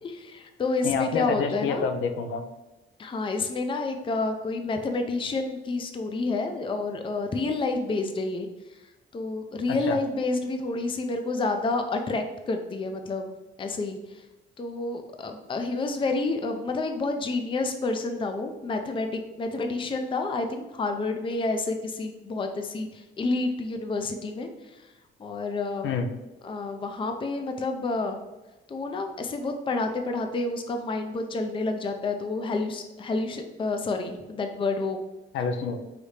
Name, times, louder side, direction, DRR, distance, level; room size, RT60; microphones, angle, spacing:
voice 1, 0.0-1.8 3.0-8.5 9.1-13.3 13.6-14.0 14.6-24.5 25.2-25.9 26.4-28.2 28.7-35.0, left 3 dB, 25° left, 5 dB, 0.5 m, -29 dB
voice 2, 0.8-2.4 9.7-10.0 25.8-26.1 35.3-35.8, left 5 dB, 80° left, 7 dB, 0.6 m, -28 dB
4.8 x 2.7 x 3.2 m, 1.1 s
cardioid pair, 90°, 20 cm